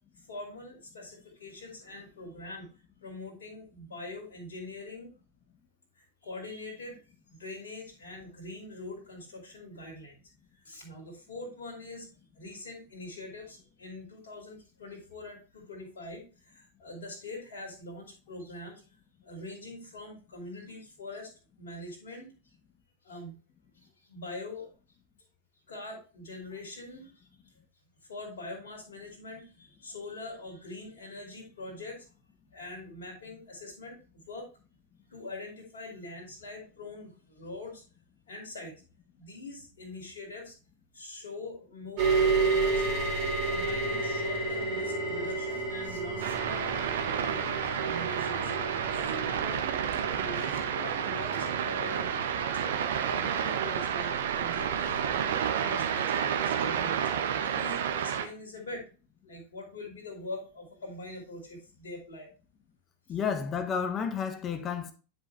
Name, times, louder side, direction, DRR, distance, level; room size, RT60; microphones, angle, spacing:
voice 1, 0.2-2.7 3.0-5.1 5.9-7.0 7.3-10.2 10.5-12.1 12.3-18.8 19.2-21.3 21.6-22.3 23.0-23.4 23.7-24.7 25.7-27.3 28.1-32.0 32.5-34.5 35.1-37.8 38.3-38.7 39.2-40.5 40.9-43.1 43.4-46.7 47.1-47.6 47.8-48.5 48.9-52.1 52.9-58.8 59.2-62.3, left 2 dB, 60° left, 2.6 m, -43 dB
sound 1, 42.0-55.4, right 3 dB, 45° right, 2.5 m, -32 dB
sound 2, 46.2-58.3, right 8 dB, 60° right, 0.9 m, -30 dB
voice 2, 63.1-64.9, left 6 dB, 25° left, 0.9 m, -31 dB
9.9 x 5.0 x 3.2 m
figure-of-eight pair, 90°, 0 cm